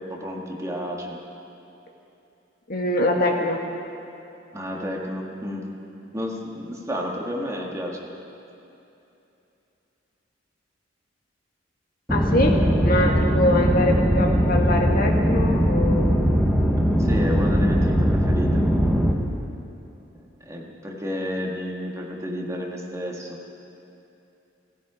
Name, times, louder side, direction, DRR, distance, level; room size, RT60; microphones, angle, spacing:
voice 1, 0.1-1.2 4.5-5.6 6.1-7.9 17.0-18.6 20.4-23.4, equal, 15° right, -1 dB, 1.8 m, -31 dB
voice 2, 2.7-3.6 12.1-16.4, left 1 dB, 50° left, 1 dB, 1.8 m, -24 dB
sound 1, 12.1-19.1, equal, ahead, 1.1 m, -20 dB
16.0 x 16.0 x 5.0 m, 2.8 s
head